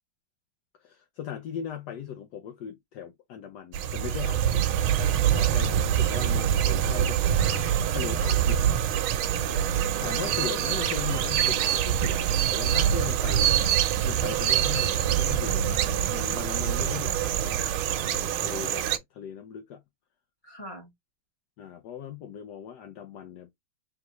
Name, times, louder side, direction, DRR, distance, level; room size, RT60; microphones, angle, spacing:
voice 1, 0.8-4.7 5.3-8.9 10.0-17.6 17.8-19.8 21.6-23.5, left 9 dB, 70° left, 1.1 m, -39 dB
sound 1, 3.7-19.0, right 10 dB, 90° right, 1.5 m, -25 dB
voice 2, 5.6-6.2 9.3-10.5 12.7-13.4 15.4-16.4 20.4-20.9, left 1 dB, 15° left, 1.8 m, -43 dB
Meow, 7.2-7.9, right 7 dB, 60° right, 1.2 m, -46 dB
3.8 x 3.4 x 3.0 m
omnidirectional pair, 2.2 m